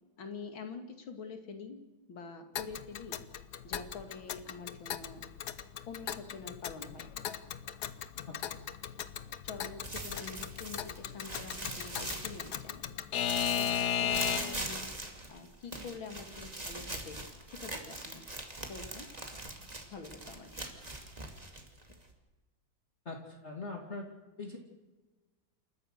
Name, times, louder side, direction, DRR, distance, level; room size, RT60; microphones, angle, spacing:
voice 1, 0.2-1.8 2.1-3.2 3.6-5.2 5.9-7.1 9.4-13.0 13.4-18.2 18.7-19.1 19.9-20.7, left 5 dB, 85° left, 6 dB, 3.0 m, -46 dB
Alarm / Clock, 2.6-14.7, left 9 dB, 60° left, 1.3 m, -37 dB
voice 2, 8.3-8.7 23.0-24.1 24.4-24.6, left 3 dB, 35° left, 1 dB, 2.8 m, -42 dB
sound 1, 9.8-12.8 13.1-22.1, right 2 dB, 20° right, 2.4 m, -42 dB
28.5 x 14.5 x 6.6 m, 1.2 s
omnidirectional pair, 2.1 m